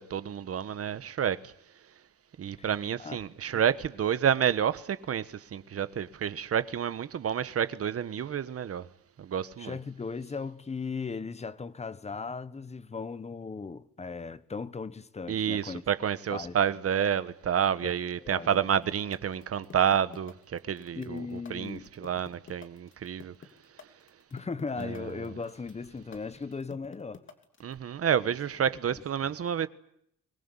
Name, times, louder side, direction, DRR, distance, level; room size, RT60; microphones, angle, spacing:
voice 1, 0.0-1.5 2.4-8.9 9.2-9.7 15.3-23.3 24.8-25.0 27.6-29.7, right 8 dB, 45° right, 1.4 m, -29 dB
voice 2, 9.6-15.8 16.3-16.5 17.8-17.9 18.2-18.6 20.9-21.9 24.3-27.2 28.2-28.3 28.9-29.3, left 4 dB, 20° left, 1.2 m, -37 dB
sound 1, 18.5-27.7, left 6 dB, 35° left, 3.0 m, -49 dB
25.0 x 21.5 x 9.8 m
cardioid pair, 165°, 34 cm